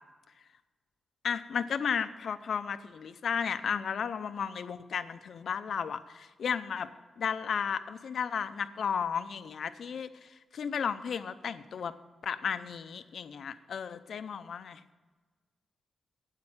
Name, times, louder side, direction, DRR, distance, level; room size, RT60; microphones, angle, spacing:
voice 1, 1.2-6.9 7.2-11.9 12.2-14.8, left 7 dB, 60° left, 12 dB, 0.6 m, -34 dB
12.0 x 8.8 x 5.7 m, 1.4 s
wide cardioid pair, 175°, 0 cm